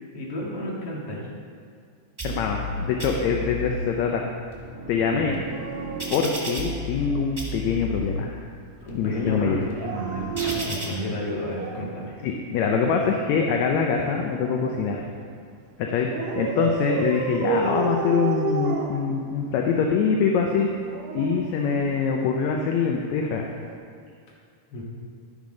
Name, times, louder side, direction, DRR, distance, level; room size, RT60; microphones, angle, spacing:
voice 1, 0.1-1.3 5.1-5.4 8.8-12.2 16.1-16.4 24.7-24.8, left 1 dB, 50° left, -4 dB, 2.7 m, -32 dB
voice 2, 2.2-4.2 4.9-5.4 6.1-8.4 9.0-9.7 12.2-15.0 15.8-20.7 21.1-23.5, left 5 dB, 75° left, 2 dB, 1.8 m, -24 dB
sound 1, 2.2-2.7 3.0-3.7 4.3-7.1 7.4-8.1 8.6-10.8, equal, 20° right, 0.5 m, -34 dB
Dog, 5.3-7.2 9.6-12.0 13.3-15.0 16.1-19.7 20.6-22.3 23.5-23.8, right 4 dB, 90° right, 2.4 m, -32 dB
12.0 x 6.6 x 5.2 m, 2.2 s
omnidirectional pair, 3.6 m